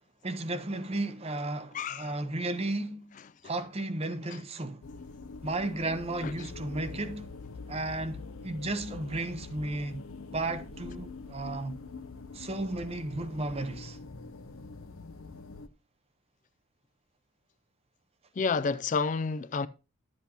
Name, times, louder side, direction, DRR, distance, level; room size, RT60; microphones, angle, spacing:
voice 1, 0.2-3.1 3.4-4.8 5.4-7.3 7.7-10.0 10.3-11.7 12.3-14.0, right 2 dB, 30° right, 0.6 m, -34 dB
voice 2, 1.7-2.1 4.3-4.4 6.2-6.5 18.4-19.7, left 5 dB, 35° left, 0.3 m, -30 dB
sound 1, 4.8-15.7, left 4 dB, 80° left, 0.6 m, -44 dB
11.5 x 7.9 x 2.8 m
head